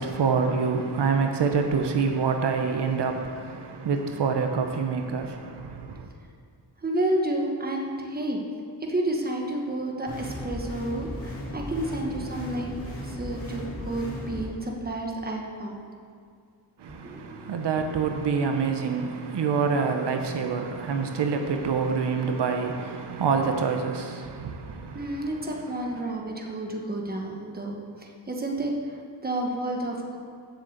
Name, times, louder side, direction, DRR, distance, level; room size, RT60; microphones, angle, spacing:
voice 1, 0.0-6.1 16.8-25.3, right 5 dB, 75° right, 4 dB, 0.8 m, -26 dB
voice 2, 6.8-8.4 8.8-15.8 17.0-17.5 17.9-18.1 24.9-30.2, right 1 dB, 20° right, 0 dB, 1.2 m, -31 dB
sound 1, 10.1-14.5, equal, 30° left, 2.5 m, -36 dB
8.0 x 6.5 x 7.8 m, 2.2 s
wide cardioid pair, 155°, 42 cm